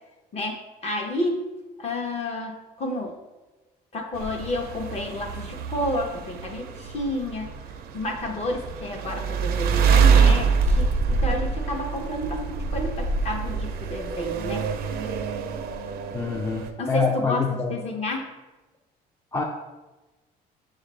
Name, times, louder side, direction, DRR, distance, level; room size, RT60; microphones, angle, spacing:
voice 1, 0.3-1.5 1.8-3.2 3.9-7.5 7.9-14.7 16.8-18.3, left 1 dB, 40° left, 2 dB, 0.8 m, -30 dB
sound 1, 4.1-16.7, right 5 dB, 70° right, 0.5 m, -25 dB
voice 2, 16.1-17.7 19.3-19.4, left 5 dB, 15° left, 1 dB, 0.4 m, -26 dB
6.6 x 2.4 x 3.2 m, 1.1 s
cardioid pair, 110°, 17 cm